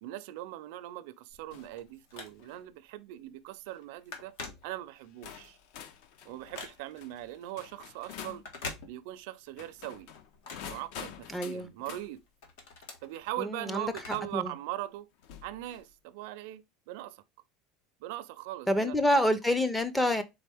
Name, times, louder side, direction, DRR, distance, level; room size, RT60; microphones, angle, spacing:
voice 1, 0.0-4.4 4.6-5.6 6.3-8.4 8.9-10.1 10.6-12.2 13.0-15.1 15.4-17.2 18.0-19.0, right 15 dB, 65° right, 0.4 m, -40 dB
Telephone, 1.3-2.7 3.2-3.4 3.7-5.2 5.6-7.1 8.3-9.4 9.7-11.5 11.9-14.5 14.8-14.9 15.7-15.8, left 3 dB, 85° left, 1.4 m, -45 dB
sound 1, 1.5-1.8 2.3-2.6 3.5-3.8 4.6-4.7 5.2-8.5 9.5-12.1 13.8-13.9 15.2-15.9, left 9 dB, 55° left, 0.6 m, -47 dB
voice 2, 11.3-11.7 13.4-13.9 14.3-14.5 18.7-20.2, left 1 dB, 5° left, 0.4 m, -27 dB
4.2 x 3.5 x 3.4 m
cardioid pair, 170°, 0 cm